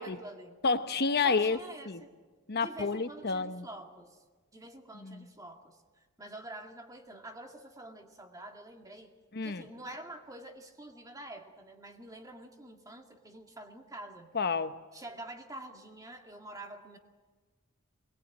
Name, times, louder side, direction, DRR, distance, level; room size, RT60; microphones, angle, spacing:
voice 1, 0.0-0.6 1.2-2.1 2.5-4.2 4.5-9.1 9.4-14.3 14.9-17.0, right 1 dB, 15° right, 4 dB, 2.0 m, -47 dB
voice 2, 0.6-1.6 1.9-2.0 2.5-3.7 5.0-5.3 9.3-9.7 14.3-14.8, left 4 dB, 50° left, 10 dB, 1.0 m, -30 dB
23.0 x 21.0 x 8.7 m, 1.3 s
head